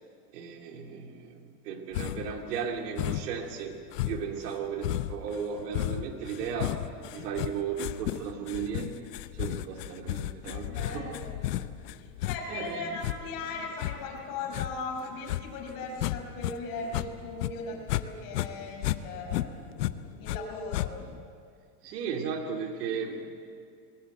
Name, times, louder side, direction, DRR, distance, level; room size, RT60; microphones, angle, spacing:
voice 1, 0.3-3.8 4.1-6.8 7.1-11.2 12.5-12.9 21.8-23.3, right 6 dB, 80° right, 4 dB, 2.8 m, -35 dB
sound 1, 1.9-2.4 3.0-3.4 3.9-16.5 16.8-18.1 18.3-20.4 20.7-21.2, left 15 dB, 80° left, 1.0 m, -33 dB
voice 2, 10.5-11.4 12.0-19.5 20.2-21.0, left 3 dB, 45° left, 1 dB, 6.0 m, -38 dB
21.5 x 18.0 x 8.0 m, 2.3 s
supercardioid pair, 140°, 47 cm